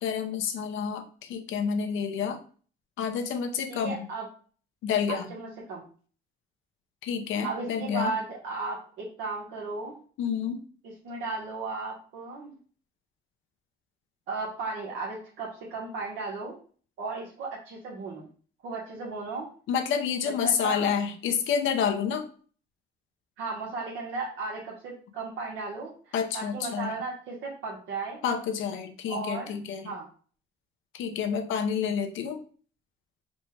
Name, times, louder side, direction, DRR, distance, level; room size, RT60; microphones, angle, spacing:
voice 1, 0.0-2.4 3.0-4.0 4.8-5.3 7.0-8.1 10.2-10.6 19.7-22.3 26.1-26.9 28.2-29.8 30.9-32.4, left 7 dB, 85° left, 6 dB, 0.7 m, -29 dB
voice 2, 3.7-4.3 5.1-5.8 7.4-10.0 11.0-12.5 14.3-16.6 17.0-18.3 18.6-19.5 20.4-20.9 23.4-28.2 29.1-29.6 29.8-30.1, right 3 dB, 85° right, -3 dB, 1.1 m, -35 dB
4.2 x 2.2 x 4.5 m, 0.42 s
cardioid pair, 90°, 20 cm